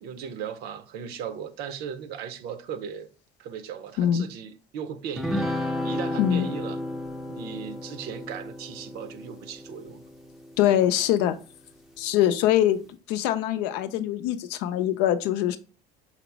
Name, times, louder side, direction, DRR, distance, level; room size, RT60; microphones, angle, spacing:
voice 1, 0.0-3.1 3.4-5.5 5.8-6.8 7.3-10.0, right 7 dB, 75° right, 0.7 m, -37 dB
sound 1, 5.2-10.8, left 1 dB, ahead, 0.5 m, -33 dB
voice 2, 6.2-6.5 10.6-11.4 12.0-15.6, left 11 dB, 85° left, 0.5 m, -23 dB
5.7 x 2.0 x 4.5 m
cardioid pair, 115°, 17 cm